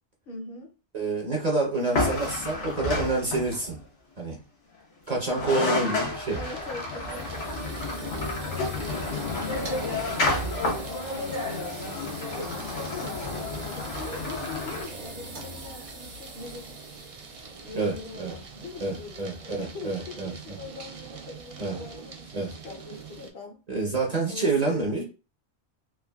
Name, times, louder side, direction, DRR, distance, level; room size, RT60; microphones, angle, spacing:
voice 1, 0.3-0.7 5.2-5.8 6.4-12.0 12.7-16.8 17.6-23.6 24.3-25.0, left 3 dB, 60° left, 0.8 m, -42 dB
voice 2, 0.9-3.8 4.2-4.4 5.1-6.4 17.7-18.3 18.8-20.3 21.6-21.8 22.3-22.5 23.7-25.0, right 3 dB, 40° right, 0.7 m, -28 dB
sound 1, 1.9-3.7 5.1-5.2 5.3-14.8, left 2 dB, 85° left, 1.1 m, -30 dB
sound 2, 5.4-23.3, right 5 dB, 60° right, 0.3 m, -45 dB
sound 3, 6.6-19.4, right 1 dB, 80° right, 1.2 m, -44 dB
3.4 x 2.2 x 2.2 m
omnidirectional pair, 1.1 m